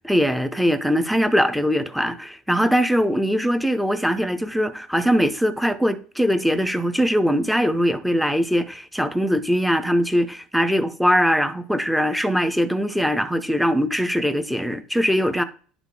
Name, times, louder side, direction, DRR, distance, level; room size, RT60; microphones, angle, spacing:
voice 1, 0.0-15.4, equal, ahead, 0.6 m, -21 dB
10.5 x 5.9 x 3.8 m
cardioid pair, 175°, 0 cm